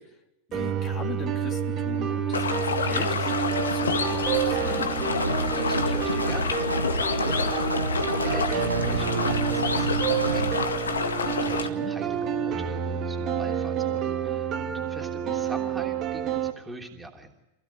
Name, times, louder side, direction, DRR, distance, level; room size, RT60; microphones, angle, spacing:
voice 1, 0.5-5.0 11.4-11.9, left 6 dB, 30° left, 3 dB, 3.1 m, -39 dB
sound 1, 0.5-16.5, right 9 dB, 30° right, 2.0 m, -29 dB
sound 2, 2.3-11.7, left 5 dB, 70° left, 1.9 m, -29 dB
sound 3, 5.0-10.6, right 1 dB, 85° right, 1.5 m, -29 dB
voice 2, 5.5-6.6 7.0-17.3, right 2 dB, 10° right, 1 dB, 3.2 m, -42 dB
27.5 x 16.5 x 9.3 m, 0.95 s
figure-of-eight pair, 90°, 0 cm